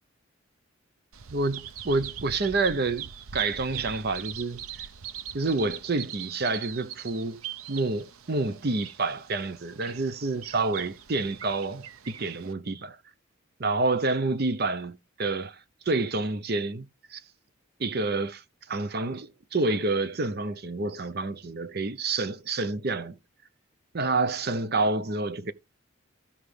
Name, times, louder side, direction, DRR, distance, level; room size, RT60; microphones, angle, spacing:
Bird vocalization bird call bird song, 1.1-12.5, right 9 dB, 85° right, 0.8 m, -42 dB
voice 1, 1.3-3.1 3.3-4.6 5.3-7.4 7.7-13.0 13.6-15.6 15.9-16.9 17.1-17.2 17.8-18.4 18.7-23.2 23.9-25.5, right 3 dB, 50° right, 0.7 m, -28 dB
15.0 x 5.0 x 3.3 m
head